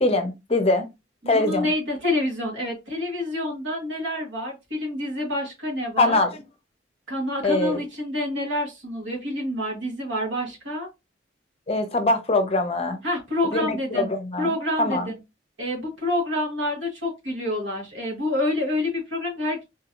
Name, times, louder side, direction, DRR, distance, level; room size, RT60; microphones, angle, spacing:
voice 1, 0.0-0.9 1.3-1.7 6.0-6.3 7.4-7.8 11.7-13.0 13.5-15.0, left 2 dB, 30° left, 0.6 m, -23 dB
voice 2, 1.2-6.2 7.1-10.9 13.0-14.1 14.4-15.2 15.6-19.6, left 1 dB, 90° right, 1.8 m, -27 dB
3.7 x 2.7 x 2.9 m
head